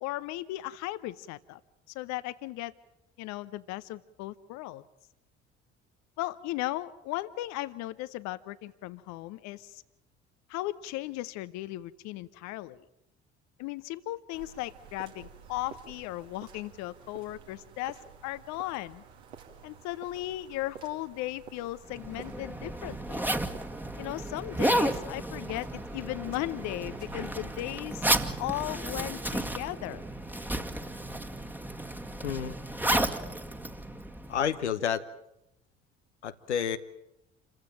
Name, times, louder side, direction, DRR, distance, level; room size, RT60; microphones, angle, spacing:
voice 1, 0.0-1.6 1.9-2.7 3.2-4.8 6.2-9.8 10.5-12.8 13.6-19.0 19.6-23.3 24.0-28.1 28.4-30.0, left 16 dB, 55° left, 16 dB, 0.9 m, -36 dB
sound 1, 14.3-27.6, right 6 dB, 70° right, 2.6 m, -51 dB
Zipper (clothing), 21.9-34.6, right 1 dB, 5° right, 1.7 m, -32 dB
voice 2, 32.2-32.6 34.3-35.0 36.2-36.8, left 8 dB, 80° left, 9 dB, 1.0 m, -29 dB
28.0 x 15.5 x 9.1 m, 0.85 s
figure-of-eight pair, 55°, 34 cm